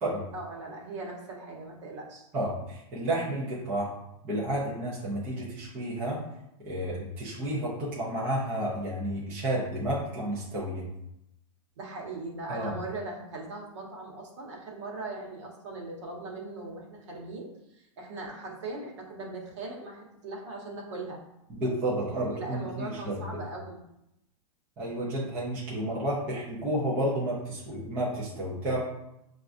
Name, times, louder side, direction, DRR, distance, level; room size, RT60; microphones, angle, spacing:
voice 1, 0.3-2.3 11.8-21.2 22.1-23.8, right 2 dB, 55° right, -2 dB, 1.1 m, -39 dB
voice 2, 2.3-3.9 4.2-6.2 6.7-10.9 12.5-12.7 21.5-23.2 24.8-28.8, right 1 dB, 10° right, -8 dB, 0.4 m, -31 dB
6.0 x 2.3 x 2.5 m, 0.84 s
supercardioid pair, 180°, 18 cm